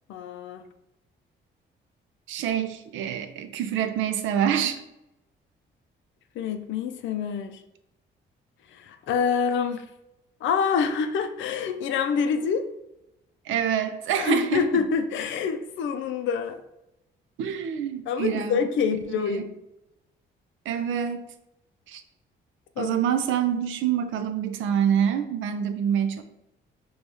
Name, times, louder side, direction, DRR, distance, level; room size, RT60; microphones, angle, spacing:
voice 1, 0.1-0.6 6.4-7.6 8.7-9.8 10.4-12.6 14.1-16.6 18.1-19.5 22.8-23.0, left 6 dB, 75° left, 8 dB, 0.4 m, -26 dB
voice 2, 2.3-4.8 13.5-14.8 17.4-18.6 19.1-19.4 20.7-21.2 21.9-22.0 22.8-26.2, right 9 dB, 80° right, 9 dB, 0.4 m, -26 dB
4.7 x 2.3 x 2.7 m, 0.89 s
cardioid pair, 90°, 20 cm